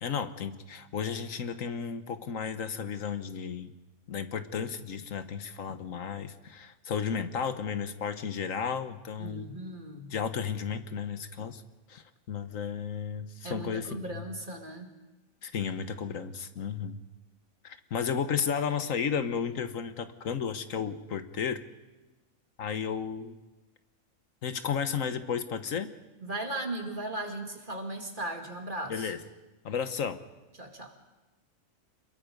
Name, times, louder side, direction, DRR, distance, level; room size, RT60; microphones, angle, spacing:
voice 1, 0.0-3.7 4.1-9.5 10.1-11.6 11.9-14.2 15.4-17.0 17.6-21.6 22.6-23.4 24.4-25.9 28.9-29.2 29.6-30.2, left 7 dB, 75° left, 10 dB, 1.4 m, -33 dB
voice 2, 9.2-10.1 13.4-14.9 26.2-29.1 30.6-30.9, right 1 dB, 40° right, 3 dB, 2.5 m, -37 dB
27.5 x 22.0 x 5.3 m, 1.1 s
omnidirectional pair, 1.4 m